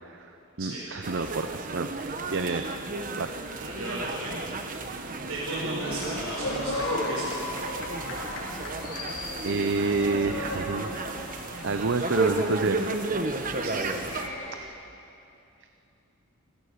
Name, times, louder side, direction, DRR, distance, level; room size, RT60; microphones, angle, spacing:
voice 1, 0.6-2.7 3.2-3.3 4.7-4.8 9.4-11.3 11.6-12.9, right 3 dB, 60° right, 8 dB, 0.7 m, -29 dB
sound 1, 1.0-14.3, right 3 dB, 40° right, 1.2 m, -33 dB
voice 2, 3.6-7.4 13.6-13.8, right 1 dB, 90° right, -5 dB, 5.7 m, -37 dB
sound 2, 5.8-14.7, left 1 dB, 75° left, 5.0 m, -36 dB
28.0 x 16.5 x 6.7 m, 2.8 s
head